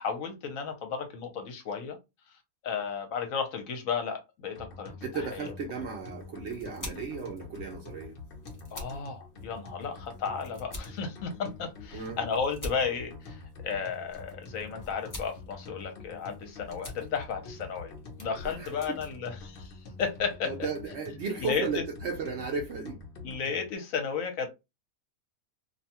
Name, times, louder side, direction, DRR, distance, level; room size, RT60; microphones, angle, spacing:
voice 1, 0.0-2.0 2.6-5.5 8.7-17.9 18.2-19.7 20.0-20.5 21.4-21.8 23.2-24.5, left 6 dB, 70° left, 1.1 m, -33 dB
sound 1, 4.6-23.7, left 3 dB, 50° left, 0.7 m, -46 dB
voice 2, 5.0-8.1 11.9-12.2 18.4-18.8 20.4-23.0, right 4 dB, 65° right, 0.7 m, -35 dB
sound 2, 5.8-20.3, left 1 dB, 20° left, 0.5 m, -48 dB
2.6 x 2.2 x 2.8 m
omnidirectional pair, 1.5 m